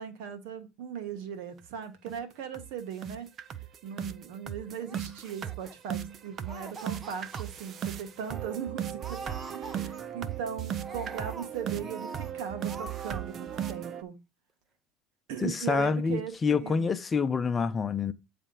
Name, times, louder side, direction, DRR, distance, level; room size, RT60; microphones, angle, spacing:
voice 1, 0.0-3.3 3.8-9.2 9.5-14.2 15.3-16.9, right 7 dB, 75° right, 1.6 m, -38 dB
sound 1, 1.6-1.7 2.1-2.2 2.5-2.7 3.0-14.0, right 9 dB, 45° right, 0.6 m, -37 dB
Laughter, 4.8-6.1 6.4-7.4 7.8-7.9 8.2-8.6 9.0-10.3 10.8-12.3 12.6-13.2 13.5-13.8, right 3 dB, 25° right, 1.0 m, -45 dB
voice 2, 15.4-18.1, left 5 dB, 25° left, 0.7 m, -27 dB
8.8 x 3.4 x 5.5 m
supercardioid pair, 110°, 0 cm